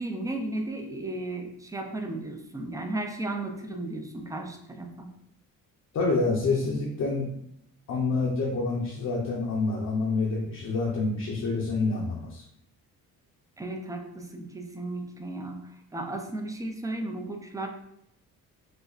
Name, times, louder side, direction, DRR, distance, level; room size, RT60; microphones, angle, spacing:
voice 1, 0.0-5.1 13.6-17.7, right 2 dB, 10° right, 3 dB, 0.4 m, -35 dB
voice 2, 5.9-7.3 7.9-12.4, left 3 dB, 45° left, -4 dB, 0.7 m, -27 dB
5.0 x 2.0 x 2.4 m, 0.76 s
cardioid pair, 100°, 37 cm